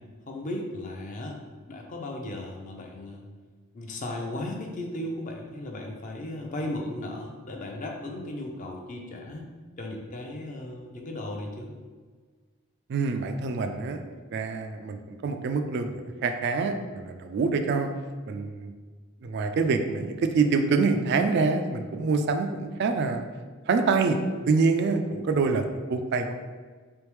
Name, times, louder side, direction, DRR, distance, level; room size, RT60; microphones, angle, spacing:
voice 1, 0.3-1.4 1.7-3.3 3.7-9.4 9.8-11.7, left 1 dB, 35° left, 1 dB, 0.5 m, -36 dB
voice 2, 12.9-14.0 14.3-17.9 18.3-18.7 19.2-23.2 23.7-24.2 24.5-26.3, right 4 dB, 50° right, 6 dB, 0.3 m, -26 dB
3.6 x 3.4 x 3.0 m, 1.5 s
head